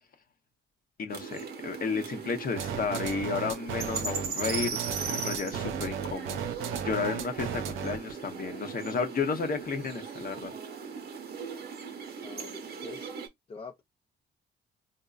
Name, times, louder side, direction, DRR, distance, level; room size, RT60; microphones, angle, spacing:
voice 1, 1.0-6.4 6.8-10.5, left 5 dB, 45° left, 0.8 m, -32 dB
sound 1, 1.1-13.3, right 6 dB, 55° right, 0.8 m, -38 dB
sound 2, 2.6-8.1, right 8 dB, 85° right, 0.5 m, -35 dB
voice 2, 12.2-13.1 13.5-13.8, left 4 dB, 30° left, 0.4 m, -44 dB
3.9 x 2.1 x 2.4 m
cardioid pair, 90°, 20 cm